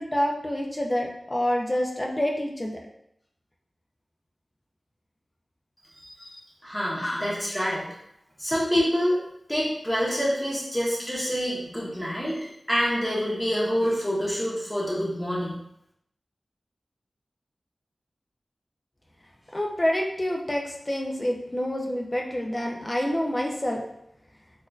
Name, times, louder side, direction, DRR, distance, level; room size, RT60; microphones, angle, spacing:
voice 1, 0.0-2.8 6.2-6.4 7.0-7.2 19.5-23.8, left 1 dB, 25° left, 0 dB, 0.5 m, -27 dB
voice 2, 6.0-6.3 6.6-7.9 8.4-9.2 9.5-15.6, equal, 5° left, -7 dB, 1.2 m, -27 dB
4.1 x 2.5 x 2.4 m, 0.77 s
wide cardioid pair, 80°, 0 cm